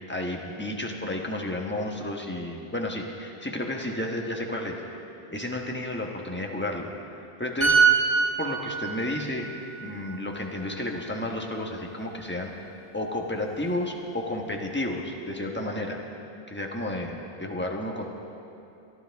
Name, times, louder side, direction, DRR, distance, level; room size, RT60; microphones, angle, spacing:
voice 1, 0.1-4.8 5.3-7.8 8.4-9.5 9.8-12.5 12.9-16.0 16.5-18.0, left 1 dB, 10° left, 0 dB, 1.2 m, -32 dB
sound 1, 7.6-11.2 11.5-11.8, right 5 dB, 40° right, 4.1 m, -25 dB
24.5 x 12.0 x 3.5 m, 2.9 s
omnidirectional pair, 1.0 m